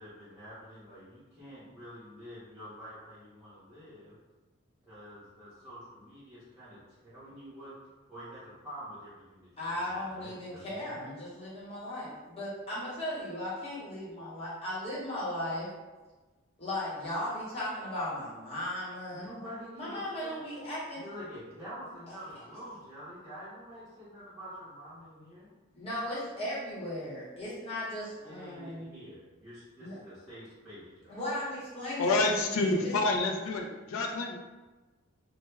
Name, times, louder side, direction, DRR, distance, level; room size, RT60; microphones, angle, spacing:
voice 1, 0.0-4.2 4.8-7.7 8.1-9.5 9.8-11.1 19.1-20.4 20.9-25.5 28.2-31.2, equal, 5° right, -13 dB, 0.7 m, -47 dB
voice 2, 9.6-15.7 16.6-19.3 19.8-21.0 25.7-28.9 29.8-30.0 31.1-32.9, left 1 dB, 30° left, -8 dB, 0.8 m, -37 dB
voice 3, 32.0-34.4, left 2 dB, 80° left, 3 dB, 0.4 m, -28 dB
2.2 x 2.0 x 3.2 m, 1.2 s
head